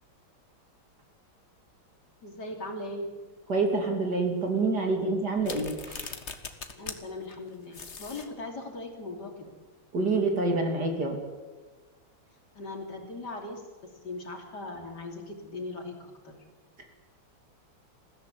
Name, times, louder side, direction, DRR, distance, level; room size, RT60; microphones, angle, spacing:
voice 1, 2.2-3.1 6.7-9.5 12.6-16.4, left 2 dB, 55° left, 3 dB, 3.6 m, -39 dB
voice 2, 3.5-6.1 9.9-11.2, right 3 dB, 50° right, 3 dB, 3.6 m, -27 dB
sound 1, 5.4-7.0 7.3-7.4 7.7-8.3, left 5 dB, 35° left, 1.7 m, -40 dB
20.5 x 15.5 x 9.4 m, 1.3 s
omnidirectional pair, 2.2 m